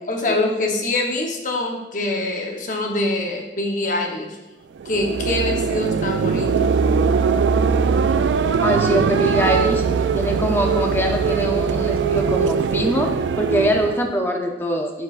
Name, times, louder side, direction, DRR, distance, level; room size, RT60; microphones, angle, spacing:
voice 1, 0.0-4.4 4.8-6.8, left 2 dB, 45° left, 1 dB, 0.9 m, -24 dB
sound 1, 4.8-14.1, right 5 dB, 85° right, 0.3 m, -21 dB
voice 2, 8.6-9.8 10.1-13.1 13.4-15.0, equal, 15° left, 2 dB, 0.6 m, -22 dB
9.4 x 4.7 x 2.5 m, 1.1 s
head